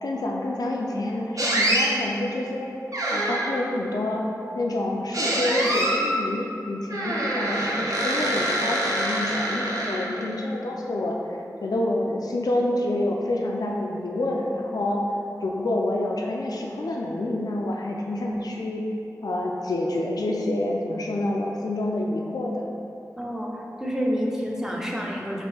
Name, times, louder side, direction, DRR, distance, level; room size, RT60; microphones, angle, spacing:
voice 1, 0.0-2.7 3.1-4.2 4.5-11.2 11.6-15.0 15.4-18.8 19.2-22.6, left 1 dB, 75° left, -1 dB, 0.4 m, -27 dB
sound 1, 1.4-1.9 2.9-3.7 5.1-6.1 6.9-10.3, right 1 dB, 60° right, 0.7 m, -25 dB
voice 2, 23.2-25.5, equal, 10° right, -2 dB, 0.6 m, -28 dB
5.3 x 2.6 x 3.3 m, 2.8 s
wide cardioid pair, 45°, 7 cm